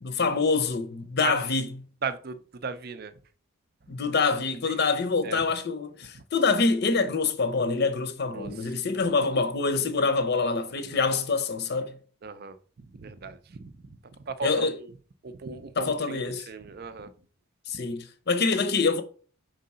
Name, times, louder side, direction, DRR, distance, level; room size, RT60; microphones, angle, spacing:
voice 1, 0.0-1.7 3.9-12.0 14.4-14.8 15.8-16.5 17.7-19.0, left 4 dB, 45° left, 0.6 m, -26 dB
voice 2, 2.0-3.1 4.7-4.8 5.2-5.4 6.1-6.2 8.3-8.5 8.9-9.0 10.9-11.0 12.2-12.6 12.9-13.7 14.2-14.9 15.2-17.1, right 4 dB, 45° right, 0.5 m, -36 dB
4.7 x 3.8 x 5.4 m
head